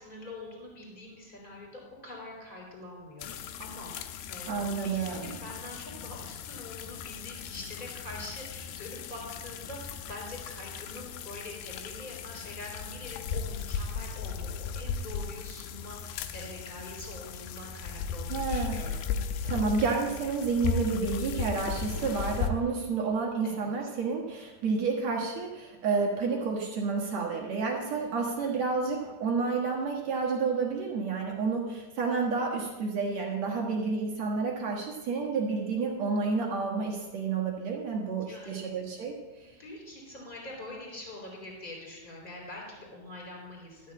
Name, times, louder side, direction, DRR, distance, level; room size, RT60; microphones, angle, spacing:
voice 1, 0.0-19.0 23.4-23.7 28.4-28.5 38.3-38.8 39.6-43.9, left 2 dB, 10° left, -2 dB, 3.4 m, -44 dB
sound 1, 3.2-22.5, left 6 dB, 85° left, 2.7 m, -37 dB
voice 2, 4.5-5.3 18.3-19.2 19.4-39.5, right 4 dB, 65° right, -1 dB, 1.7 m, -30 dB
13.5 x 5.5 x 8.4 m, 1.2 s
omnidirectional pair, 5.0 m